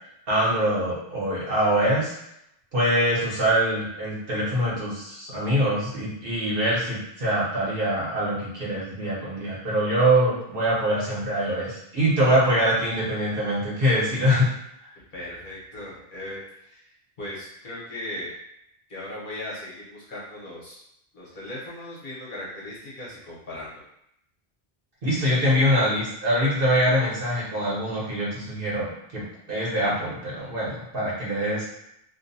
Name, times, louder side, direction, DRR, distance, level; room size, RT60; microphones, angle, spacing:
voice 1, 0.3-2.1 2.7-14.5 25.0-29.2 29.5-31.6, equal, 60° right, -7 dB, 1.1 m, -24 dB
voice 2, 15.1-16.9 17.2-18.4 18.9-20.8 21.1-23.8, left 1 dB, 55° left, -7 dB, 1.0 m, -38 dB
2.6 x 2.1 x 2.6 m, 0.79 s
omnidirectional pair, 1.0 m